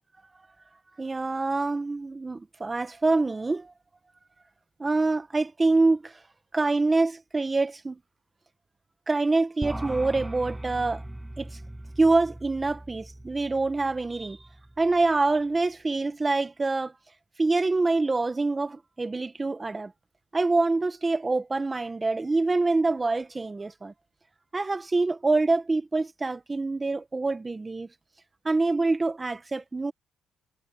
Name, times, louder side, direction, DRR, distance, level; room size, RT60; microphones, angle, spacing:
voice 1, 1.0-3.7 4.8-6.1 6.5-8.0 9.1-11.0 11.4-11.5 12.0-14.4 14.8-16.9 17.4-19.9 20.3-23.9 24.5-27.9 28.4-29.9, right 3 dB, 25° right, 1.3 m, -25 dB
sound 1, 9.6-15.1, right 1 dB, 10° right, 6.9 m, -40 dB
cardioid pair, 90°, 0 cm